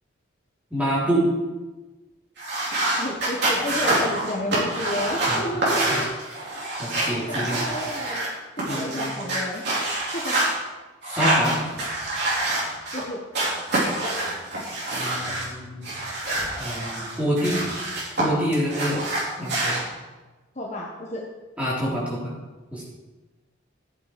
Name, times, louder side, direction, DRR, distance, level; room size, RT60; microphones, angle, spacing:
voice 1, 0.7-1.2 5.3-6.0 6.8-7.6 8.7-9.2 11.1-11.6 14.9-15.9 16.6-17.6 18.2-19.1 19.4-19.8 21.6-22.3 22.7-22.8, equal, 5° right, -8 dB, 4.3 m, -27 dB
sound 1, 2.4-8.3 8.6-10.5 11.0-13.0 13.3-15.5 15.8-18.2 18.5-19.8, right 1 dB, 55° right, 4.2 m, -26 dB
voice 2, 3.0-6.1 7.3-8.2 8.6-9.7 10.1-10.4 12.9-13.2 20.5-21.3, left 1 dB, 35° left, -1 dB, 1.2 m, -31 dB
14.0 x 8.4 x 5.1 m, 1.2 s
head